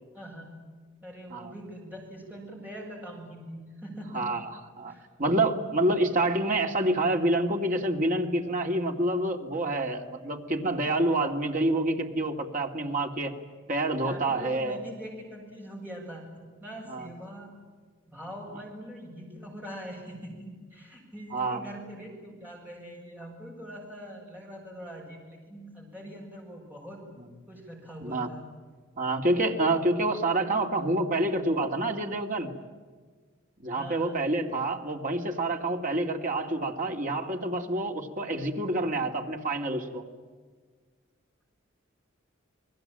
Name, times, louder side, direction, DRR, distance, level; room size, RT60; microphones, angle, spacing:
voice 1, 0.1-0.6 1.0-4.3 4.9-5.1 14.0-17.5 18.1-27.0 27.5-28.4 33.7-34.2, equal, 10° right, -1 dB, 7.2 m, -43 dB
voice 2, 4.1-4.9 5.2-13.3 13.7-14.8 16.9-17.1 21.3-21.6 28.0-28.3 29.0-32.5 33.6-40.0, right 2 dB, 40° right, 3 dB, 2.4 m, -27 dB
29.5 x 21.0 x 8.9 m, 1.5 s
head